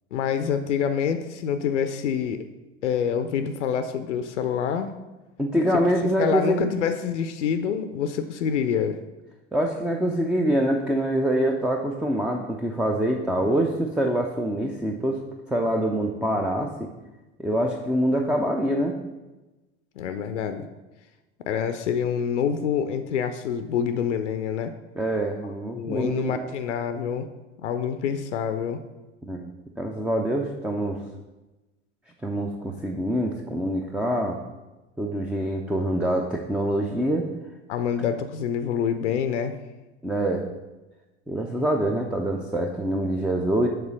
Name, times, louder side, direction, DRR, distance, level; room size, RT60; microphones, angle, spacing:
voice 1, 0.1-2.5 2.8-4.9 6.2-9.0 20.0-20.7 21.4-24.7 25.7-27.3 27.6-28.8 37.7-39.6, left 7 dB, 75° left, 9 dB, 0.5 m, -26 dB
voice 2, 5.4-6.6 9.5-15.2 15.5-16.7 17.4-19.0 24.9-26.5 29.2-29.5 29.8-31.0 32.2-34.4 35.0-37.3 40.0-40.4 41.3-43.7, right 1 dB, 5° right, 2 dB, 0.4 m, -25 dB
6.7 x 4.1 x 6.2 m, 1.1 s
figure-of-eight pair, 70°, 36 cm